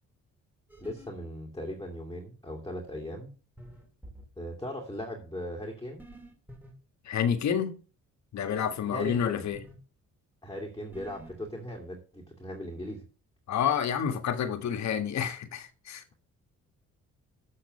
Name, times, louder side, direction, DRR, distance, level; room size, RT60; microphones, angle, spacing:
sound 1, 0.7-1.1 3.6-4.3 6.0-6.7 9.0-9.8 10.9-11.5, right 1 dB, 5° right, 2.6 m, -48 dB
voice 1, 0.8-3.3 4.4-6.0 8.9-9.4 10.4-13.0, left 1 dB, 10° left, 2.5 m, -38 dB
voice 2, 7.0-7.8 8.3-9.7 13.5-16.2, left 8 dB, 65° left, 1.7 m, -29 dB
7.6 x 6.5 x 6.5 m
cardioid pair, 90°, 30 cm